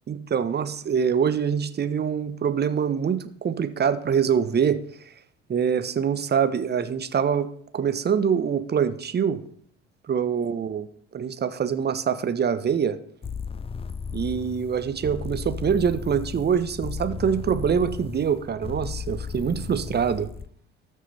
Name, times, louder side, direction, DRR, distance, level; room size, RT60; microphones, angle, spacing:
voice 1, 0.1-4.8 5.5-7.5 7.7-9.4 10.1-10.8 11.1-13.0 14.1-20.3, right 7 dB, 30° right, 12 dB, 1.1 m, -24 dB
sound 1, 13.2-20.5, left 5 dB, 15° left, 0.5 m, -35 dB
19.0 x 6.6 x 3.4 m, 0.63 s
figure-of-eight pair, 60°, 34 cm